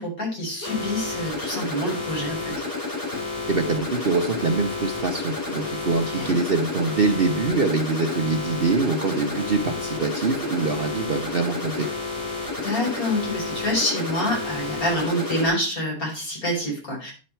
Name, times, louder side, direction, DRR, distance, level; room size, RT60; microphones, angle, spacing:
voice 1, 0.0-2.6 6.1-6.4 12.6-17.1, left 1 dB, 60° left, -3 dB, 5.3 m, -27 dB
sound 1, 0.6-15.5, left 3 dB, 80° left, 5.5 m, -30 dB
voice 2, 3.5-11.9, right 3 dB, 40° right, 4 dB, 0.9 m, -24 dB
10.5 x 6.4 x 4.4 m, 0.33 s
omnidirectional pair, 1.7 m